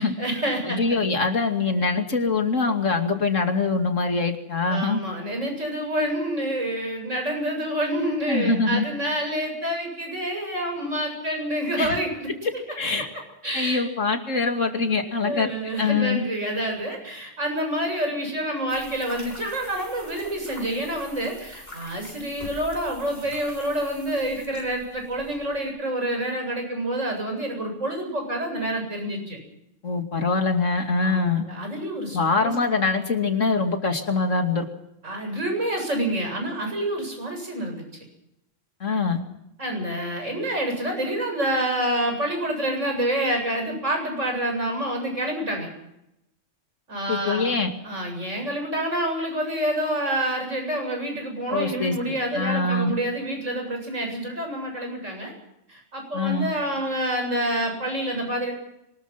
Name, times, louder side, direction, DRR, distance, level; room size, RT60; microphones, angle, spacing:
voice 1, 0.0-1.0 4.7-12.3 13.4-13.8 15.1-29.4 31.0-32.5 35.0-37.8 39.6-45.7 46.9-47.5 47.8-55.3 55.7-58.5, right 1 dB, 80° right, 2 dB, 8.3 m, -28 dB
voice 2, 0.6-5.0 8.3-8.9 11.8-12.0 12.4-13.1 13.5-15.5 15.8-16.2 29.8-31.4 32.1-34.7 38.8-39.2 47.1-47.7 51.5-52.9 56.1-56.5, left 4 dB, 85° left, 5 dB, 2.9 m, -24 dB
sound 1, 18.7-25.7, left 1 dB, 35° left, 7.3 m, -44 dB
24.0 x 21.0 x 5.9 m, 0.83 s
omnidirectional pair, 1.3 m